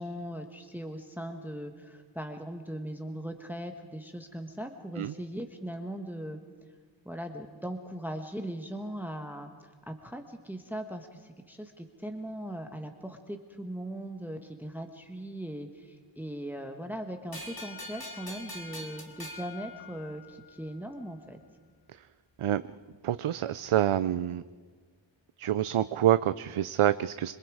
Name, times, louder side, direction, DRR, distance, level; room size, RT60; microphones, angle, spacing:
voice 1, 0.0-6.4 7.0-21.4, right 1 dB, 5° right, 5 dB, 1.4 m, -39 dB
sound 1, 17.3-20.6, left 1 dB, 45° left, 2.7 m, -43 dB
voice 2, 23.0-24.4 25.4-27.3, right 11 dB, 85° right, 14 dB, 0.6 m, -27 dB
26.5 x 22.5 x 4.9 m, 1.5 s
wide cardioid pair, 45°, 49 cm